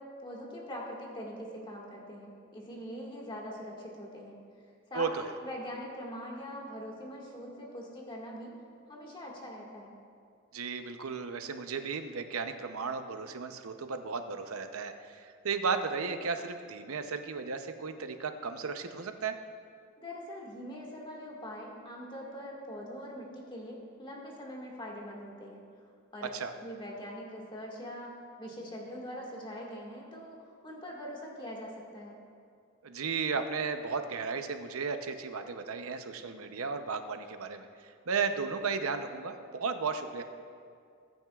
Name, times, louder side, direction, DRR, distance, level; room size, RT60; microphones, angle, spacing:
voice 1, 0.0-4.4 4.9-8.5 8.9-9.9 20.0-25.6 26.1-26.3 26.6-32.2, equal, 25° left, -2 dB, 1.9 m, -43 dB
voice 2, 10.5-19.4 26.3-26.5 32.8-37.7 38.1-40.2, right 5 dB, 80° right, 7 dB, 0.7 m, -34 dB
21.0 x 9.1 x 2.4 m, 2.3 s
head